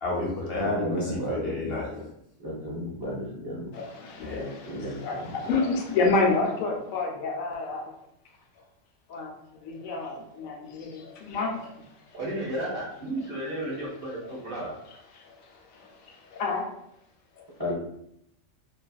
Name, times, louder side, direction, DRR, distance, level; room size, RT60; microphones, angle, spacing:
voice 1, 0.0-2.0 3.3-3.6 4.2-4.7, left 2 dB, 55° left, -4 dB, 0.8 m, -31 dB
voice 2, 0.6-1.6 2.4-3.7 4.7-5.3 17.6-17.7, equal, 40° right, -7 dB, 0.3 m, -33 dB
voice 3, 3.7-7.9 9.1-12.2 15.2-16.6 17.4-17.5, left 3 dB, 85° left, 0 dB, 1.0 m, -30 dB
voice 4, 12.1-14.8, right 1 dB, 55° right, -5 dB, 0.7 m, -33 dB
2.5 x 2.3 x 2.3 m, 0.76 s
omnidirectional pair, 1.4 m